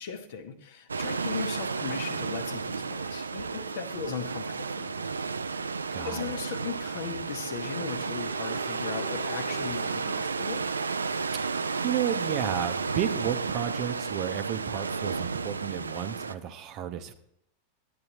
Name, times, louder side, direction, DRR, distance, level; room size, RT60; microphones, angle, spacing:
voice 1, 0.0-5.2 5.5-10.6, left 6 dB, 55° left, 8 dB, 0.9 m, -38 dB
sound 1, 0.9-16.3, right 4 dB, 75° right, 0.3 m, -32 dB
voice 2, 5.9-6.4 11.4-17.1, right 10 dB, 40° right, 10 dB, 0.7 m, -32 dB
Bowed string instrument, 8.0-12.5, left 1 dB, 5° left, 0.6 m, -51 dB
10.5 x 8.7 x 2.9 m, 0.77 s
figure-of-eight pair, 90°, 0 cm